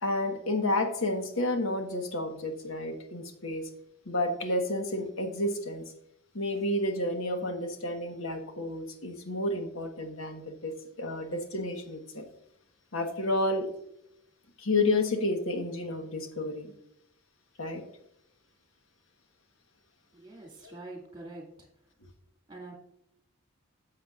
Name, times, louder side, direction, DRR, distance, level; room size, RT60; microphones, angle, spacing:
voice 1, 0.0-3.7 4.1-5.8 6.3-12.3 12.9-13.7 14.6-16.7 17.6-17.9 20.6-20.7, left 2 dB, 70° left, 1.2 m, -31 dB
voice 2, 20.1-21.7 22.5-22.7, right 2 dB, 20° right, 2.1 m, -45 dB
9.4 x 7.3 x 2.4 m
head